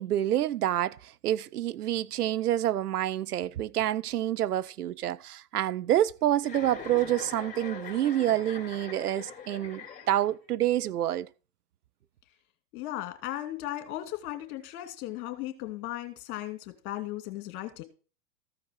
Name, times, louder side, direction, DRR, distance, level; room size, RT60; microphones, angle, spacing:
voice 1, 0.0-11.3, right 12 dB, 70° right, 0.7 m, -28 dB
Chuckle chortle, 6.4-10.5, left 5 dB, 15° left, 3.0 m, -43 dB
voice 2, 12.7-17.8, left 14 dB, 45° left, 2.5 m, -36 dB
14.5 x 4.9 x 6.4 m
hypercardioid pair, 105°, 47 cm